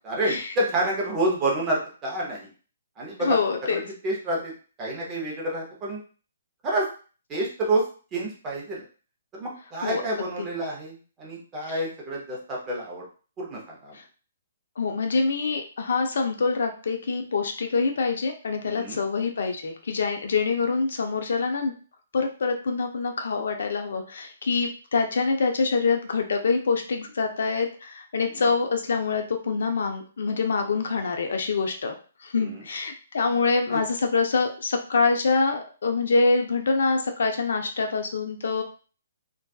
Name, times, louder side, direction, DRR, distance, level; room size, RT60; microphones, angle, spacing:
voice 1, 0.0-2.5 3.0-3.4 3.7-4.5 4.8-6.0 6.6-6.9 7.3-7.9 8.1-8.8 9.3-13.0 13.4-14.0 18.7-19.0 28.3-28.4 32.4-32.6 33.7-33.8, right 1 dB, 15° right, -4 dB, 0.5 m, -28 dB
voice 2, 3.2-3.8 9.8-10.0 13.9-14.0 14.8-21.7 22.1-31.9 32.2-38.6, left 4 dB, 60° left, 5 dB, 0.4 m, -25 dB
2.6 x 2.2 x 2.2 m, 0.38 s
hypercardioid pair, 175°, 0 cm